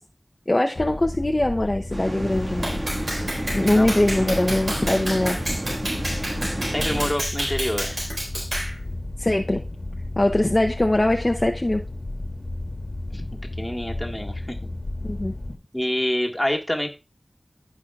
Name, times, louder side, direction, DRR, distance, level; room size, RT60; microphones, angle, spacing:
voice 1, 0.5-2.7 3.5-5.4 9.2-9.6 10.2-11.8 15.0-15.3, left 1 dB, 40° left, 2 dB, 0.7 m, -22 dB
sound 1, 0.8-15.6, left 2 dB, 75° left, 1.4 m, -33 dB
sound 2, 1.9-7.1, right 1 dB, 45° right, 1.7 m, -31 dB
Clapping, 2.6-8.7, right 1 dB, 70° right, 3.8 m, -30 dB
voice 2, 6.7-8.0 13.1-13.3 13.6-14.6 15.7-16.9, equal, 15° left, 1 dB, 1.7 m, -26 dB
15.5 x 5.4 x 2.4 m, 0.30 s
wide cardioid pair, 55°, 0 cm